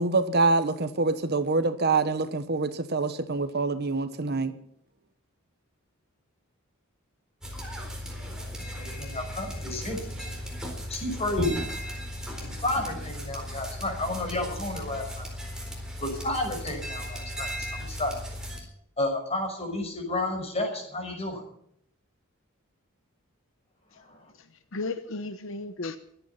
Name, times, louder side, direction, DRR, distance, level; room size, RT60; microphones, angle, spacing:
voice 1, 0.0-4.5, right 3 dB, 50° right, 1.1 m, -25 dB
sound 1, 7.4-18.6, equal, 5° right, 4.2 m, -36 dB
voice 2, 8.8-10.0 10.9-11.5 12.4-15.2 16.0-18.1 18.6-18.7 19.0-21.4 24.1-24.2, left 2 dB, 30° left, 5.8 m, -31 dB
voice 3, 24.4-26.0, left 3 dB, 65° left, 1.0 m, -35 dB
23.0 x 9.3 x 5.7 m
head